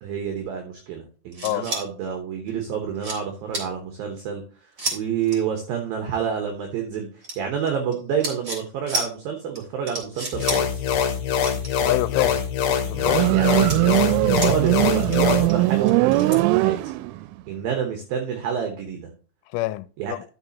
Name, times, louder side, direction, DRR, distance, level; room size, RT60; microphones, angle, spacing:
voice 1, 0.0-4.4 4.9-10.9 13.3-13.7 14.3-16.8 17.5-19.1 20.0-20.1, right 7 dB, 70° right, 2.4 m, -28 dB
sound 1, 1.3-1.8 2.5-2.6 2.9-3.2 3.5-3.7 4.8-5.0 5.2-5.4 7.2-7.9 8.2-8.6 8.9-9.1 9.5-9.6 9.8-10.6 10.9-11.1 11.4-12.4 12.9-13.2 13.6-14.7 15.0-16.4, right 2 dB, 20° right, 3.3 m, -31 dB
sound 2, 10.3-15.5, left 8 dB, 65° left, 2.9 m, -24 dB
voice 2, 11.9-12.4 12.8-13.7 19.5-20.2, left 18 dB, 90° left, 3.0 m, -27 dB
Motorcycle, 13.0-17.3, right 19 dB, 90° right, 3.0 m, -20 dB
12.5 x 6.6 x 2.9 m
omnidirectional pair, 5.5 m